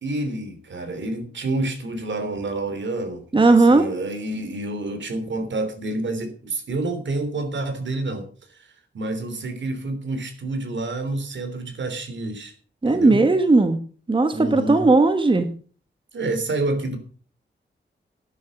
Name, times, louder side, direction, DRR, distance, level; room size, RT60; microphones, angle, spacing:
voice 1, 0.0-12.5 12.9-13.2 14.3-14.8 16.1-17.0, right 2 dB, 70° right, 8 dB, 3.4 m, -28 dB
voice 2, 3.3-3.9 12.8-13.8 14.1-15.5, right 3 dB, 25° right, 8 dB, 1.3 m, -17 dB
12.0 x 10.0 x 6.3 m, 0.41 s
wide cardioid pair, 135°, 19 cm